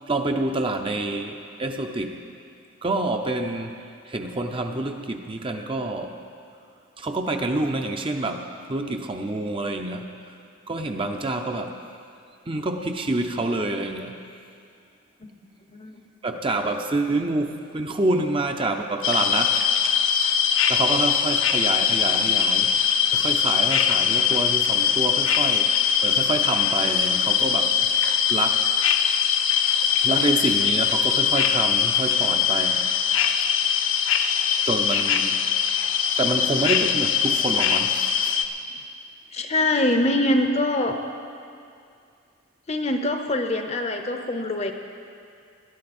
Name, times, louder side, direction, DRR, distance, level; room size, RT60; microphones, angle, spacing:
voice 1, 0.1-2.2 2.8-3.8 4.1-6.2 7.0-10.1 10.7-11.8 12.5-14.2 16.2-19.8 20.7-27.8 28.3-29.2 30.0-32.9 34.7-35.4 36.2-38.3, right 2 dB, 25° right, 4 dB, 0.6 m, -27 dB
voice 2, 15.7-16.0 39.3-41.0 42.7-44.7, left 1 dB, 30° left, 6 dB, 0.8 m, -23 dB
sound 1, 19.0-38.4, left 7 dB, 65° left, 0.6 m, -22 dB
18.5 x 11.5 x 4.3 m, 2.4 s
head